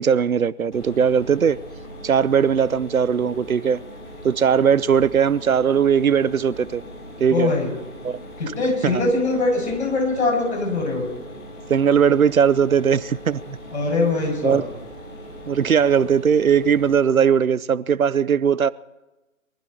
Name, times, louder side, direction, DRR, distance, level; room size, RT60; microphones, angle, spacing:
voice 1, 0.0-1.6 2.0-3.8 4.2-6.8 7.2-7.5 8.0-8.2 8.8-9.0 11.7-13.6 14.4-14.6 15.5-18.7, right 7 dB, 80° right, 0.6 m, -19 dB
Mechanisms, 0.7-16.9, equal, 35° left, 4.6 m, -40 dB
voice 2, 7.3-7.7 8.4-11.1 13.7-14.6, left 3 dB, 55° left, 7.0 m, -22 dB
22.5 x 12.5 x 4.4 m
figure-of-eight pair, 140°, 41 cm